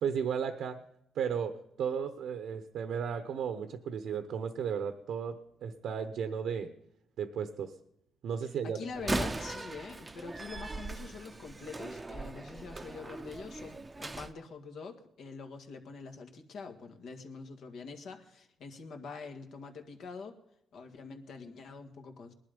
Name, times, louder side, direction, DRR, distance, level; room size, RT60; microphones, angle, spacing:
voice 1, 0.0-0.8 1.1-6.7 7.2-7.7 8.2-8.8, right 7 dB, 75° right, 9 dB, 0.9 m, -34 dB
voice 2, 8.4-20.4 20.7-22.3, left 4 dB, 70° left, 5 dB, 1.9 m, -45 dB
Slam, 8.9-14.3, right 2 dB, 20° right, 0.7 m, -39 dB
19.5 x 11.5 x 5.2 m, 0.77 s
cardioid pair, 90°, 0 cm